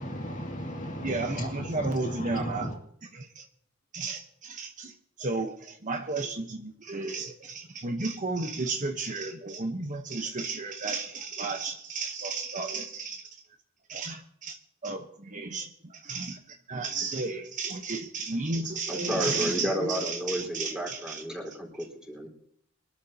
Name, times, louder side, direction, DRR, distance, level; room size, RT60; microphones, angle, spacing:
voice 1, 0.0-2.8, equal, 40° left, 0 dB, 2.4 m, -35 dB
voice 2, 1.0-2.7 3.1-3.4 3.9-4.9 5.2-13.2 13.9-14.6 14.8-21.2, right 3 dB, 40° right, 5 dB, 1.1 m, -33 dB
voice 3, 18.9-22.3, equal, 5° right, 0 dB, 4.3 m, -32 dB
23.5 x 13.0 x 2.9 m, 0.67 s
head